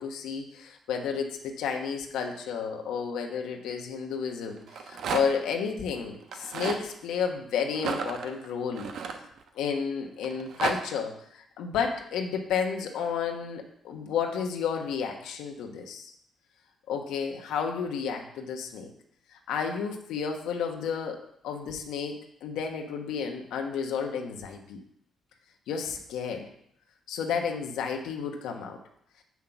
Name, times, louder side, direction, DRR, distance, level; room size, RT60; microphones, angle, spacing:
voice 1, 0.0-8.9 9.5-16.1 16.9-18.9 19.5-21.2 21.4-24.8 25.7-26.5 27.1-28.8, left 6 dB, 85° left, 3 dB, 1.2 m, -31 dB
Rattle, 4.6-5.5 6.2-6.8 7.7-9.7 10.2-10.8, right 5 dB, 70° right, 1.0 m, -33 dB
7.4 x 5.8 x 5.9 m, 0.72 s
cardioid pair, 90°, 0 cm